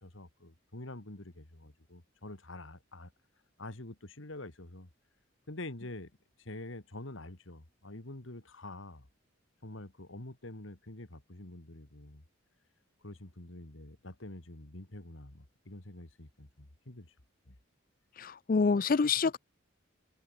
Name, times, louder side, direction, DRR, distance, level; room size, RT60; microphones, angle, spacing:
voice 1, 0.0-3.1 3.6-4.9 5.5-6.1 6.4-9.1 9.6-12.2 13.0-17.1 17.5-17.6, left 2 dB, 75° left, 2.4 m, -46 dB
voice 2, 18.2-19.4, left 4 dB, 45° left, 0.4 m, -27 dB
open air
head